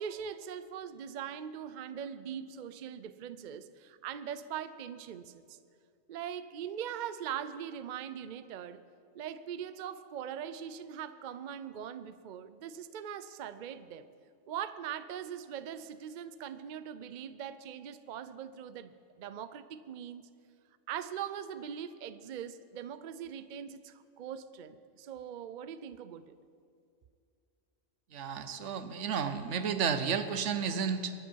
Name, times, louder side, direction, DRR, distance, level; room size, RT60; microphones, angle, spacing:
voice 1, 0.0-5.6 6.1-8.8 9.1-14.1 14.5-18.9 19.2-20.3 20.9-26.4, right 9 dB, 55° right, 13 dB, 0.6 m, -41 dB
voice 2, 28.1-31.1, right 6 dB, 80° right, 10 dB, 1.2 m, -32 dB
22.0 x 10.0 x 4.6 m, 2.3 s
omnidirectional pair, 1.2 m